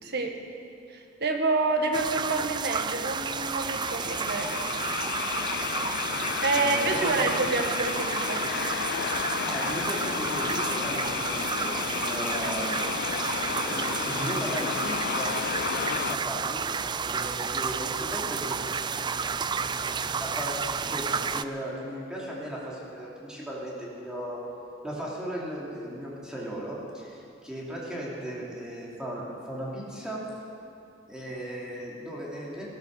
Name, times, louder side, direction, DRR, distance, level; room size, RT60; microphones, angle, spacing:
voice 1, 0.0-0.4 0.9-4.6 6.4-8.4, right 3 dB, 55° right, 4 dB, 1.6 m, -28 dB
sound 1, 1.9-21.4, right 6 dB, 25° right, 0.4 m, -31 dB
sound 2, 3.1-16.2, left 9 dB, 55° left, 0.3 m, -32 dB
voice 2, 6.6-7.3 9.5-12.8 13.5-15.3 15.7-16.6 17.0-18.7 18.9-19.6 20.1-24.4 24.8-30.2 31.1-32.7, equal, 5° right, -6 dB, 3.0 m, -36 dB
16.0 x 14.0 x 6.6 m, 2.5 s
head